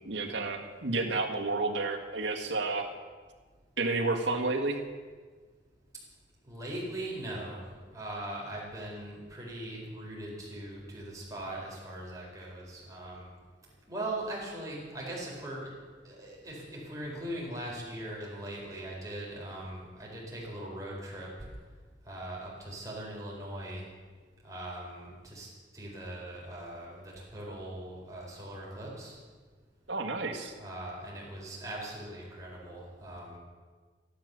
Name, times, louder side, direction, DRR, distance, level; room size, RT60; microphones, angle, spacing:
voice 1, 0.1-2.9 3.8-4.8 29.9-30.5, right 3 dB, 80° right, 2 dB, 1.8 m, -31 dB
voice 2, 6.4-13.3 13.9-15.7 16.0-21.3 22.1-23.8 24.4-29.2 30.6-33.4, right 1 dB, 20° right, -4 dB, 4.4 m, -40 dB
14.0 x 11.5 x 6.8 m, 1.5 s
head